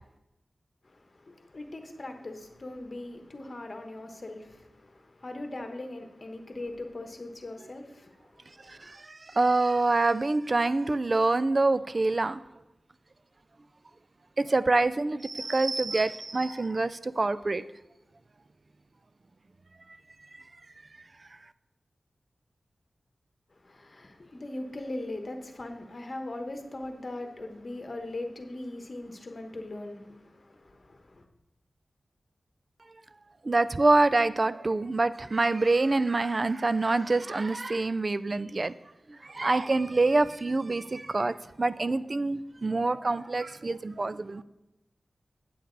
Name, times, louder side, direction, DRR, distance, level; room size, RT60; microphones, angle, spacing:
voice 1, 0.8-8.9 23.5-31.2, left 2 dB, 40° left, 5 dB, 1.1 m, -40 dB
voice 2, 8.7-12.4 14.4-17.6 33.4-38.7 39.1-44.4, right 2 dB, 40° right, 15 dB, 0.3 m, -26 dB
8.6 x 8.5 x 4.0 m, 0.91 s
wide cardioid pair, 100°, 0 cm